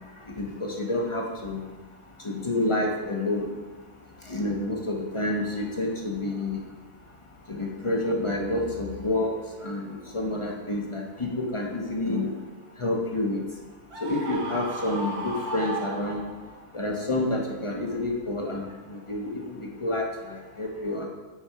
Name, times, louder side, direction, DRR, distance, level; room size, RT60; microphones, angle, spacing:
voice 1, 0.4-1.6 2.2-3.5 4.3-6.6 7.5-12.3 12.8-13.4 14.0-16.2 16.7-20.0 20.3-21.1, left 2 dB, 25° left, 0 dB, 0.8 m, -29 dB
Screaming, 13.9-16.6, right 2 dB, 70° right, 1.5 m, -35 dB
9.4 x 4.4 x 4.7 m, 1.4 s
omnidirectional pair, 1.7 m